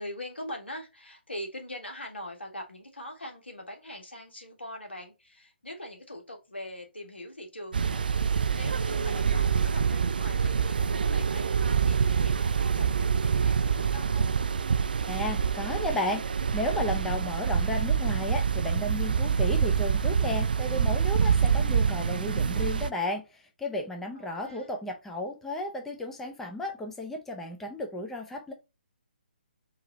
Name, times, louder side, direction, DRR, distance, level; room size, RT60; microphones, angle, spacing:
voice 1, 0.0-14.3 24.1-24.7, left 1 dB, 75° left, 1.7 m, -42 dB
sound 1, 7.7-22.9, right 6 dB, 55° right, 0.3 m, -26 dB
voice 2, 15.1-28.5, left 1 dB, 5° left, 0.5 m, -33 dB
4.7 x 2.8 x 4.0 m
figure-of-eight pair, 135°, 6 cm